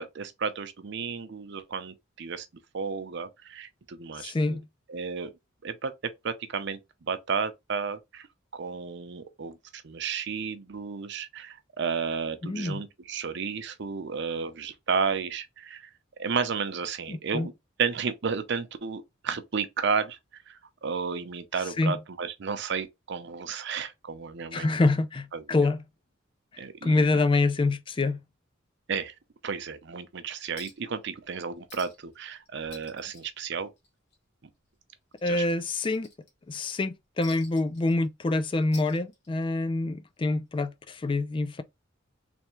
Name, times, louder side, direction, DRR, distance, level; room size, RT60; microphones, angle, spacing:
voice 1, 0.0-2.5 2.7-4.6 4.9-5.3 5.6-6.8 7.1-8.3 8.5-15.9 16.2-17.5 17.8-20.2 20.5-24.7 25.3-25.7 26.6-27.0 28.9-29.1 29.4-33.7 35.3-35.5, right 5 dB, 60° right, 0.6 m, -32 dB
voice 2, 4.2-4.6 12.4-12.8 17.1-17.5 21.8-21.9 24.5-25.8 26.8-28.2 35.2-36.1 36.5-41.6, left 2 dB, 25° left, 0.4 m, -26 dB
Chink clink, 30.6-30.9 31.2-31.3 31.7-32.2 32.5-34.2 34.5-34.7 35.1-36.5 37.2-38.3 38.6-39.5 40.6-40.7, left 4 dB, 55° left, 1.6 m, -50 dB
3.5 x 3.2 x 3.0 m
head